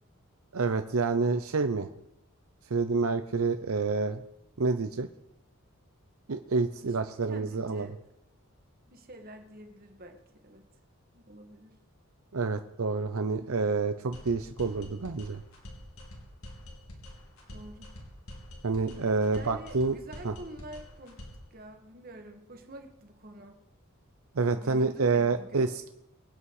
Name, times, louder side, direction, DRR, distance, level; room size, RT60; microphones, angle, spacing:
voice 1, 0.5-1.9 2.7-4.2 4.6-5.1 6.3-7.9 12.3-15.4 18.6-20.0 20.2-20.3 24.4-25.9, right 4 dB, 80° right, 8 dB, 0.7 m, -28 dB
voice 2, 7.3-8.0 8.9-10.7 11.1-11.8 17.5-17.9 19.3-21.2 21.5-23.6 24.5-25.7, right 1 dB, 45° right, 5 dB, 2.0 m, -47 dB
sound 1, 14.1-21.5, left 1 dB, 80° left, 3.6 m, -46 dB
24.5 x 8.5 x 4.9 m, 0.85 s
head